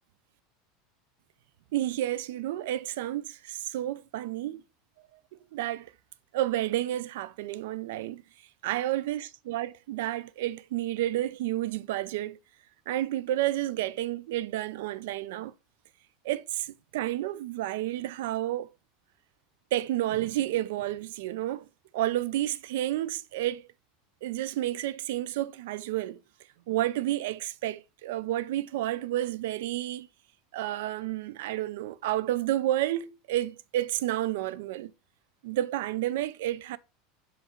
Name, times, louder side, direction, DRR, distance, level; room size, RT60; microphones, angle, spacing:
voice 1, 1.7-4.6 5.3-5.9 6.3-8.2 8.6-12.4 12.9-15.5 16.2-18.7 19.7-21.7 21.9-23.7 24.2-26.2 26.7-30.1 30.5-34.9 35.4-36.8, right 14 dB, 80° right, 0.5 m, -30 dB
7.5 x 4.0 x 4.3 m
supercardioid pair, 115°, 0 cm